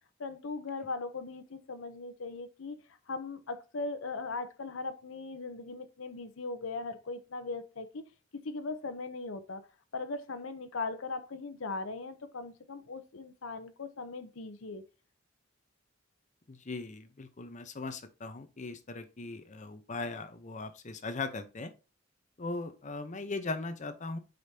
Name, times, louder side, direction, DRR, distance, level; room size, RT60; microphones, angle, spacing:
voice 1, 0.2-8.0 8.3-9.6 9.9-14.8, left 3 dB, 90° left, 0.8 m, -39 dB
voice 2, 16.5-21.7 22.4-24.2, left 3 dB, 40° left, 0.8 m, -39 dB
7.9 x 5.1 x 2.8 m
head